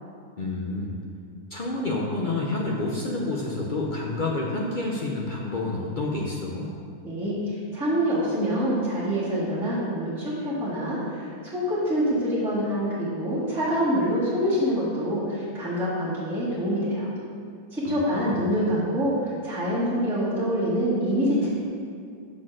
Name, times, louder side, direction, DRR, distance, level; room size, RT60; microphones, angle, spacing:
voice 1, 0.4-1.0 1.5-6.7 17.8-18.4, left 2 dB, 50° left, -3 dB, 0.6 m, -29 dB
voice 2, 7.0-17.1 17.7-21.5, equal, ahead, -11 dB, 1.7 m, -26 dB
6.1 x 4.2 x 6.0 m, 2.3 s
omnidirectional pair, 1.6 m